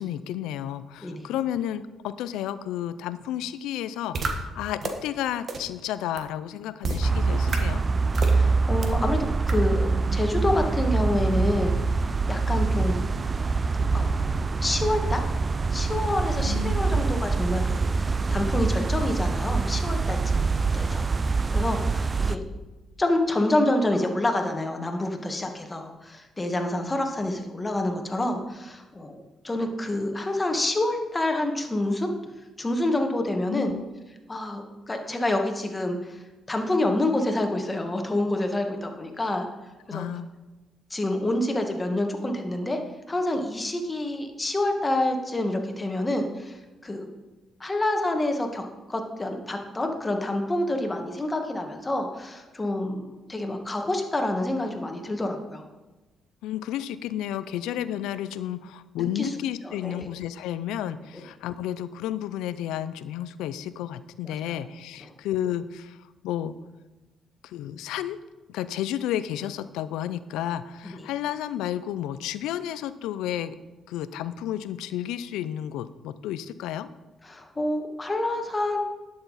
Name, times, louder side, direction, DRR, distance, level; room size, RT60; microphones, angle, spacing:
voice 1, 0.0-7.8 16.4-16.8 33.5-33.8 39.9-40.3 56.4-66.0 66.2-66.6 67.4-68.2 68.5-73.6 73.9-76.9, left 11 dB, 85° left, 14 dB, 0.4 m, -32 dB
sound 1, 4.1-4.3 4.8-4.9 5.5-5.6 6.2-6.3 6.8-7.0 7.5-7.6 8.1-8.3 8.8-8.9 9.5-9.6, right 4 dB, 55° right, 1.3 m, -28 dB
sound 2, 7.0-22.4, right 4 dB, 35° right, 0.5 m, -25 dB
voice 2, 8.3-9.2 9.5-11.8 12.0-13.1 13.9-15.2 15.7-21.1 21.5-22.4 23.0-29.2 29.4-32.1 32.6-33.7 34.3-36.2 36.5-39.5 39.9-40.0 40.9-42.8 43.1-47.1 47.6-55.6 59.1-59.3 59.6-60.1 61.1-61.2 70.8-71.0 77.2-78.8, left 1 dB, 25° left, 4 dB, 1.6 m, -27 dB
11.0 x 6.9 x 4.1 m, 1.1 s
supercardioid pair, 60°, 0 cm